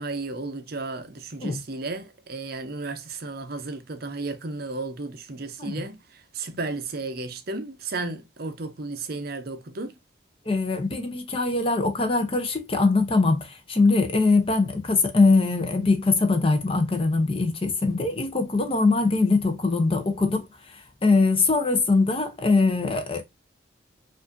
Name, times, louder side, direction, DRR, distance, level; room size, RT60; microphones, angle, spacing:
voice 1, 0.0-9.9, right 3 dB, 50° right, 0.6 m, -33 dB
voice 2, 10.5-23.2, left 3 dB, 30° left, 0.6 m, -22 dB
4.7 x 2.5 x 2.6 m
head